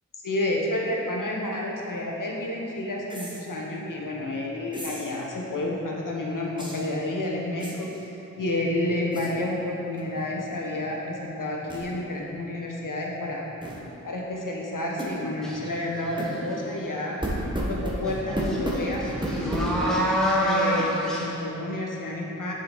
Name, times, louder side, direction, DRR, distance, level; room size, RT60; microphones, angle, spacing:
voice 1, 0.2-7.9 8.4-13.4 14.0-17.2 17.7-22.5, left 1 dB, 70° left, -2 dB, 1.1 m, -30 dB
sound 1, 3.1-3.4 4.7-5.2 6.6-6.9 7.6-8.0 9.1-9.3 9.9-10.2 10.5-10.6 11.7-11.9 13.6-13.8 15.0-15.2 16.2-16.3 17.2-19.9, right 1 dB, 15° right, 1.3 m, -32 dB
sound 2, 15.4-15.7 16.1-16.8 18.1-18.2 18.5-21.3, equal, ahead, 1.3 m, -26 dB
6.8 x 5.4 x 4.0 m, 3.0 s
cardioid pair, 40°, 33 cm